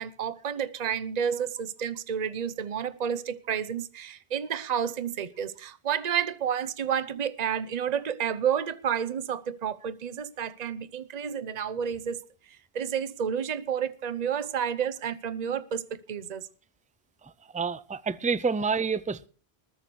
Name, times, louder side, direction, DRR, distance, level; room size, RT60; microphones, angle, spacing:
voice 1, 0.0-12.2 12.7-16.5, right 8 dB, 45° right, 0.9 m, -30 dB
voice 2, 17.2-19.3, right 5 dB, 10° right, 0.4 m, -29 dB
20.5 x 6.9 x 6.2 m
omnidirectional pair, 1.1 m